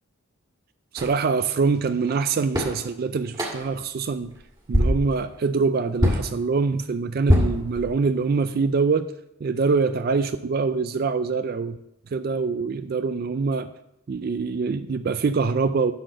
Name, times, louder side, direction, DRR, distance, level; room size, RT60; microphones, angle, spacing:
voice 1, 0.9-4.3 4.7-9.1 9.4-11.8 12.1-13.7 14.1-15.9, right 4 dB, 45° right, 11 dB, 0.3 m, -24 dB
sound 1, 1.0-1.2 2.1-2.2 2.5-2.8 3.3-3.8 4.2-4.4 4.7-5.1 6.0-6.3 7.3-8.2, equal, 20° right, 1.7 m, -22 dB
11.5 x 4.0 x 7.4 m, 0.83 s
head